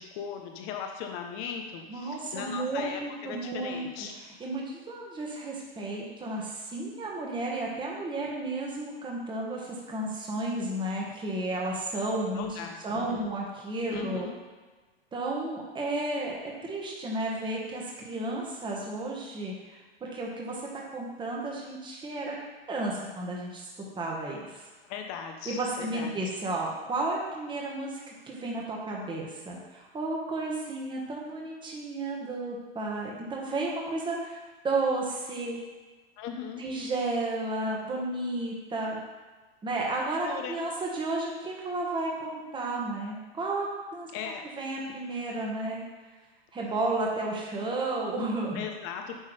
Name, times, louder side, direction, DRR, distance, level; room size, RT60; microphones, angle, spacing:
voice 1, 0.0-4.1 12.3-13.3 13.9-14.3 24.8-26.2 36.2-36.6 40.2-40.6 44.1-44.5 48.5-49.2, left 7 dB, 45° left, 4 dB, 0.9 m, -38 dB
voice 2, 1.9-4.1 4.4-12.5 12.8-14.3 15.1-22.3 22.7-23.6 24.0-24.6 25.4-34.4 34.6-35.6 36.6-39.0 39.6-44.1 44.6-45.8 46.5-48.6, right 2 dB, 15° right, -2 dB, 1.4 m, -32 dB
9.9 x 3.7 x 3.3 m, 1.3 s
hypercardioid pair, 115°, 30 cm